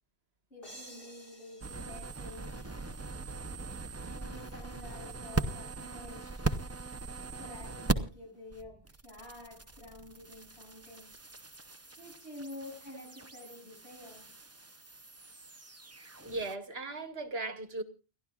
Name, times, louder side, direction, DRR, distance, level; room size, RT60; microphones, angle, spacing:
voice 1, 0.5-2.7 4.0-6.5 7.4-11.2 12.0-14.3, left 1 dB, 85° left, 8.2 m, -49 dB
sound 1, 0.6-3.3, equal, 60° left, 4.1 m, -53 dB
sound 2, 1.6-8.2 8.5-16.6, right 3 dB, 15° right, 0.7 m, -39 dB
voice 2, 16.2-17.8, right 2 dB, 70° right, 1.7 m, -37 dB
30.0 x 11.5 x 2.4 m
omnidirectional pair, 1.1 m